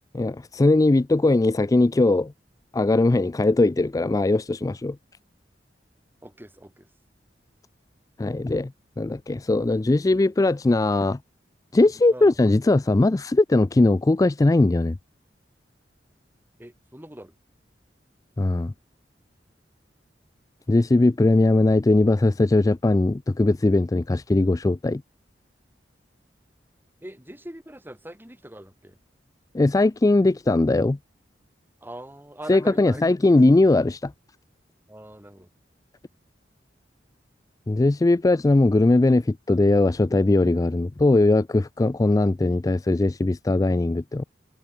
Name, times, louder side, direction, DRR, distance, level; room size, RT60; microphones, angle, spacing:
voice 1, 0.1-2.3 2.7-5.0 8.2-8.7 9.0-11.2 11.7-15.0 18.4-18.7 20.7-25.0 29.5-31.0 32.5-34.1 37.7-44.2, left 2 dB, 20° left, 0.4 m, -20 dB
voice 2, 6.2-6.9 12.1-12.4 16.6-17.3 27.0-29.0 31.8-33.0 34.9-35.5, right 1 dB, 10° right, 3.5 m, -42 dB
head